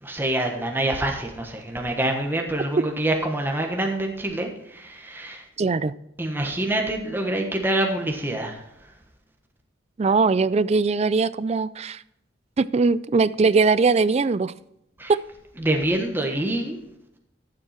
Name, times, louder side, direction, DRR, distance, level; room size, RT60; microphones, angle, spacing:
voice 1, 0.0-5.4 6.2-8.6 15.0-15.1 15.6-16.8, right 1 dB, 10° right, 2 dB, 1.3 m, -26 dB
voice 2, 5.6-5.9 10.0-12.0 12.6-14.5 15.1-15.2, right 4 dB, 35° right, 18 dB, 0.4 m, -20 dB
12.5 x 7.7 x 4.3 m, 0.83 s
head